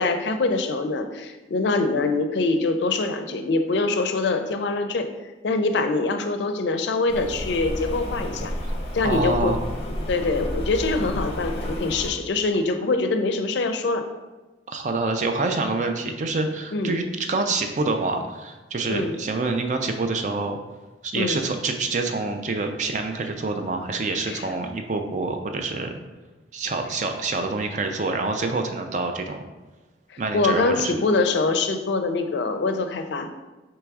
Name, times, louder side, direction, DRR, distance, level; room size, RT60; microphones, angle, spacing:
voice 1, 0.0-5.1 5.4-8.5 8.9-9.6 10.1-14.0 16.7-16.9 18.9-19.2 21.1-21.4 24.3-24.5 30.3-33.3, left 3 dB, 70° left, 7 dB, 0.4 m, -24 dB
Rain, 7.1-12.1, equal, 35° left, 0.6 m, -31 dB
voice 2, 9.0-9.6 14.7-20.6 21.0-25.9 26.5-29.4 30.2-30.9, right 3 dB, 40° right, 5 dB, 0.4 m, -26 dB
3.5 x 3.0 x 4.7 m, 1.2 s
head